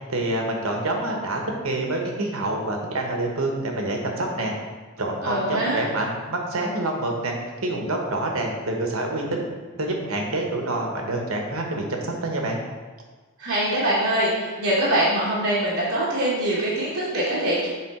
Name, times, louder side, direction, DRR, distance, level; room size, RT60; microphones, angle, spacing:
voice 1, 0.1-4.5 5.0-7.3 7.6-9.4 9.8-12.6, right 2 dB, 70° right, 1 dB, 1.2 m, -27 dB
voice 2, 5.2-5.8 13.4-17.7, right 1 dB, 50° right, -8 dB, 1.5 m, -23 dB
7.6 x 3.4 x 4.9 m, 1.3 s
head